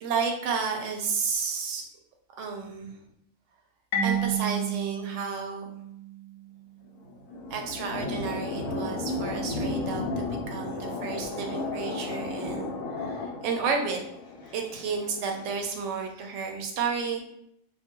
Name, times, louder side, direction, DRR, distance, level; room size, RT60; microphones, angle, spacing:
voice 1, 0.0-1.8 2.4-3.0 4.0-5.7 7.5-14.0 14.5-17.2, right 5 dB, 70° right, 3 dB, 0.8 m, -31 dB
Marimba xylophone, 3.9-6.6, right 5 dB, 65° left, 0.8 m, -31 dB
sound 1, 6.8-15.4, left 2 dB, 90° left, 1.0 m, -34 dB
2.3 x 2.3 x 2.9 m, 0.74 s
omnidirectional pair, 1.4 m